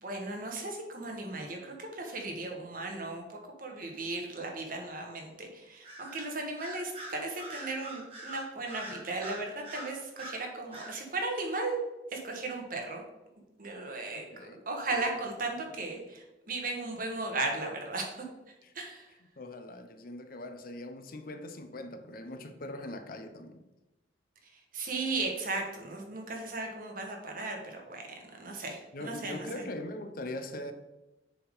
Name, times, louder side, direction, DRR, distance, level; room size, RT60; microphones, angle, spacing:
voice 1, 0.0-11.8 12.1-13.0 13.6-18.2 18.7-19.1 24.7-28.0 28.4-29.5, right 3 dB, 50° right, 1 dB, 1.3 m, -36 dB
Bird vocalization bird call bird song, 5.8-6.2 6.6-10.4 10.7-10.9, right 1 dB, 35° right, 1.9 m, -43 dB
voice 2, 14.1-15.1 15.7-16.1 18.6-18.7 19.4-23.6 28.9-30.7, left 1 dB, 55° left, 8 dB, 0.6 m, -42 dB
6.9 x 3.7 x 5.1 m, 1.0 s
head